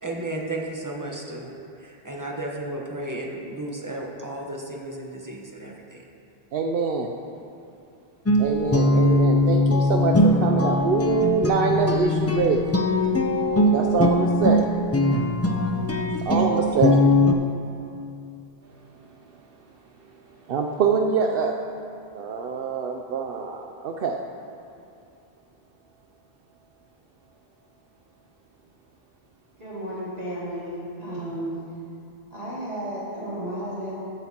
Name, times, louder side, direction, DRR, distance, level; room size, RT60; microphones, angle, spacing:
voice 1, 0.0-6.0, right 1 dB, 20° right, -1 dB, 1.0 m, -34 dB
voice 2, 6.5-7.1 8.4-12.8 13.7-14.7 16.3-17.0 20.5-21.6 22.1-24.2, right 5 dB, 65° right, 2 dB, 0.7 m, -24 dB
Guitar, 8.3-17.3, left 1 dB, 25° left, 0.3 m, -21 dB
voice 3, 29.6-31.5 32.3-33.9, right 1 dB, 40° right, -9 dB, 2.4 m, -33 dB
14.0 x 9.1 x 2.9 m, 2.6 s
omnidirectional pair, 1.1 m